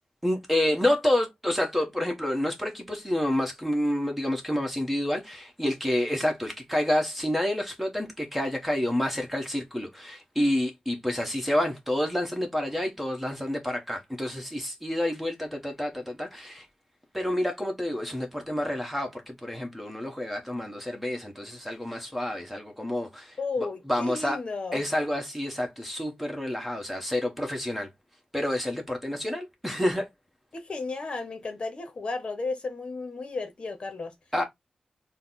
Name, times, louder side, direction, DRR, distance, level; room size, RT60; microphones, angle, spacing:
voice 1, 0.2-16.7 17.1-23.4 23.9-24.4 24.7-27.9 28.3-30.1 34.3-34.4, left 1 dB, 5° right, 1.3 m, -28 dB
voice 2, 23.4-24.8 30.5-34.1, left 3 dB, 50° left, 0.9 m, -33 dB
4.1 x 2.2 x 4.0 m
cardioid pair, 75°, 2 cm